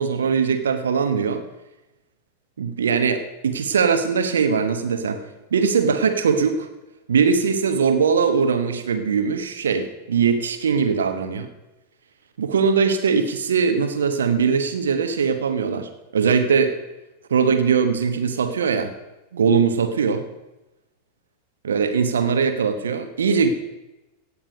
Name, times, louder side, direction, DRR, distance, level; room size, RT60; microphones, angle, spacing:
voice 1, 0.0-1.4 2.6-5.2 5.5-6.7 7.1-11.5 12.4-16.7 17.3-18.9 19.3-20.2 21.6-23.5, right 6 dB, 65° right, 8 dB, 1.1 m, -21 dB
16.5 x 8.7 x 5.1 m, 1.0 s
figure-of-eight pair, 90°, 0 cm